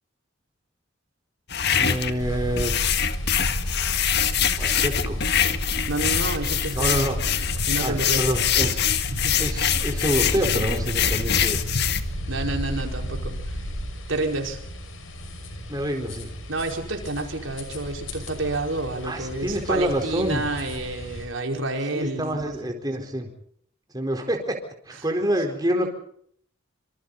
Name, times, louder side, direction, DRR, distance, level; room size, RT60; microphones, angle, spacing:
sound 1, 1.5-12.0, left 8 dB, 55° left, 1.7 m, -24 dB
voice 1, 1.7-2.7 4.6-5.2 6.8-7.2 7.8-8.8 9.4-11.6 15.7-16.3 19.0-20.4 21.9-23.3 23.9-24.6 24.9-25.9, equal, 20° right, 3 dB, 4.3 m, -27 dB
sound 2, 2.2-21.3, equal, 90° left, 6.1 m, -32 dB
voice 2, 5.9-8.2 9.1-9.6 12.3-13.3 14.1-14.6 16.5-22.6 24.9-25.5, right 2 dB, 75° right, 2 dB, 5.0 m, -30 dB
27.0 x 26.5 x 4.2 m, 0.64 s
head